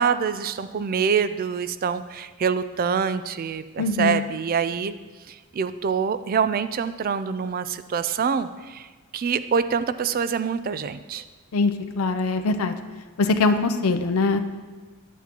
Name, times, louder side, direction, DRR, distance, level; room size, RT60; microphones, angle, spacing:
voice 1, 0.0-4.9 5.3-8.9 9.1-11.2, right 6 dB, 40° right, 13 dB, 0.3 m, -25 dB
voice 2, 3.8-4.2 11.5-12.7 13.2-14.4, left 3 dB, 80° left, 8 dB, 0.5 m, -22 dB
11.0 x 8.3 x 2.9 m, 1.4 s
head